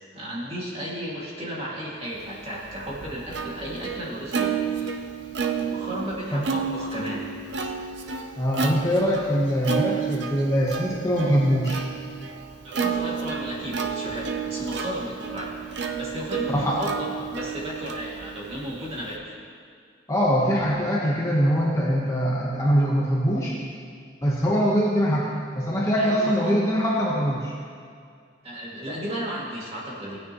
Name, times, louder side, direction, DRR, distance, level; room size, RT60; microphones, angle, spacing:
voice 1, 0.1-5.0 5.5-7.3 12.6-15.5 16.0-19.4 26.0-26.6 28.4-30.2, equal, 30° right, -6 dB, 2.3 m, -34 dB
Plucked string instrument, 2.4-19.2, right 6 dB, 65° right, 0.7 m, -31 dB
voice 2, 8.4-11.8 16.5-16.8 20.1-23.6 24.2-25.3 25.5-27.5, equal, 15° left, -5 dB, 1.1 m, -23 dB
16.5 x 9.3 x 3.1 m, 2.2 s
head